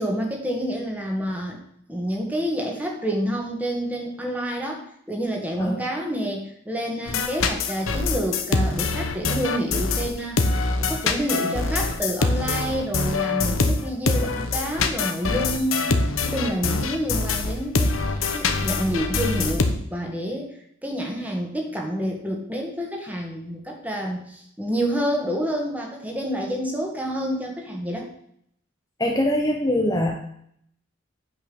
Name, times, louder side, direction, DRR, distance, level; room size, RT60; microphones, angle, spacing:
voice 1, 0.0-1.6 1.9-16.0 16.2-20.5 20.8-28.1, equal, 5° right, 1 dB, 1.8 m, -28 dB
sound 1, 7.1-19.7, left 3 dB, 80° left, 1.1 m, -24 dB
voice 2, 29.0-30.1, left 1 dB, 15° left, 0 dB, 0.9 m, -22 dB
9.0 x 5.6 x 7.0 m, 0.69 s
head